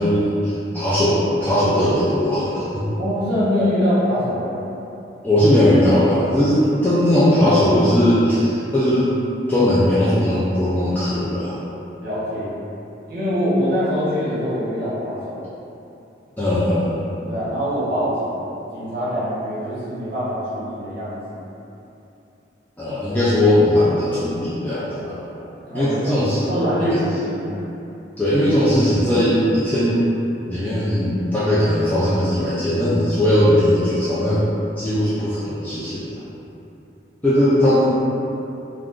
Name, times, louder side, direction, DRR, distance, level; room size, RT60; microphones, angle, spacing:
voice 1, 0.0-2.8 5.2-9.1 9.5-11.6 16.4-17.1 22.8-25.3 25.7-26.4 26.8-27.0 28.2-30.0 30.5-34.4 34.8-36.2 37.2-38.0, left 1 dB, 10° left, -12 dB, 0.3 m, -18 dB
voice 2, 3.0-4.6 12.0-12.6 13.1-15.4 17.3-21.4 25.6-27.5, equal, 50° right, -11 dB, 1.0 m, -24 dB
2.4 x 2.3 x 3.5 m, 2.9 s
head